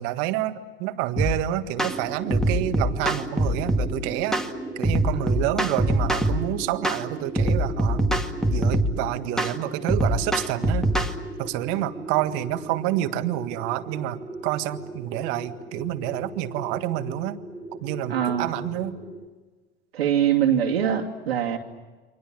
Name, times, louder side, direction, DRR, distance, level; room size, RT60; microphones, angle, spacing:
voice 1, 0.0-4.4 4.8-8.0 8.5-10.9 11.4-17.4 17.8-19.0, right 14 dB, 60° right, 9 dB, 1.7 m, -28 dB
sound 1, 1.2-1.4 1.8-2.0 2.3-3.9 4.3-4.5 4.8-6.4 6.8-7.0 7.4-9.0 9.4-9.5 9.9-11.1, right 1 dB, ahead, 2.0 m, -23 dB
sound 2, 1.8-19.3, right 2 dB, 15° right, 2.6 m, -37 dB
voice 2, 18.1-18.5 19.9-21.6, right 9 dB, 85° right, 2 dB, 2.7 m, -23 dB
29.0 x 24.5 x 7.7 m, 1.3 s
hypercardioid pair, 90°, 30 cm